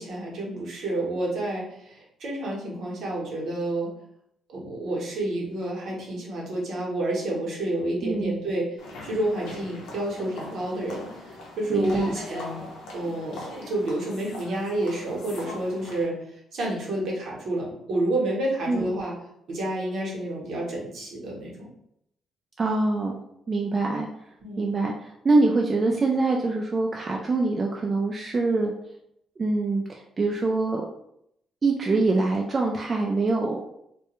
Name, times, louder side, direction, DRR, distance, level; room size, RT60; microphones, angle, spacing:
voice 1, 0.0-3.9 4.5-8.7 9.0-12.6 12.9-16.1 16.5-19.1 19.5-21.7 24.4-24.7, right 1 dB, 70° right, -3 dB, 0.9 m, -29 dB
voice 2, 8.0-8.3 11.7-12.1 18.7-18.9 22.6-23.2 23.5-24.1 24.6-28.7 29.4-30.9 31.6-33.6, right 3 dB, 35° right, -1 dB, 0.3 m, -24 dB
sound 1, 8.8-16.0, left 2 dB, 85° left, 0.6 m, -41 dB
2.2 x 2.1 x 2.9 m, 0.76 s
cardioid pair, 90°, 0 cm